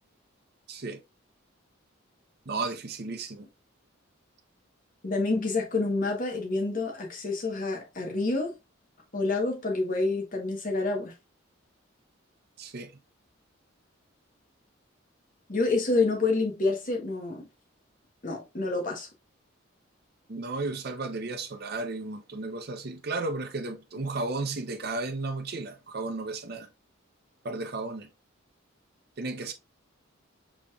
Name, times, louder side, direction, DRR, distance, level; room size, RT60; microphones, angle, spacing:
voice 1, 0.7-1.0 2.5-3.5 12.6-12.9 20.3-26.7 27.4-28.1 29.2-29.5, right 3 dB, 50° right, 0.6 m, -34 dB
voice 2, 5.0-8.5 9.1-11.1 15.5-17.4 18.2-19.1, left 3 dB, 40° left, 1.0 m, -28 dB
5.2 x 3.0 x 2.3 m
head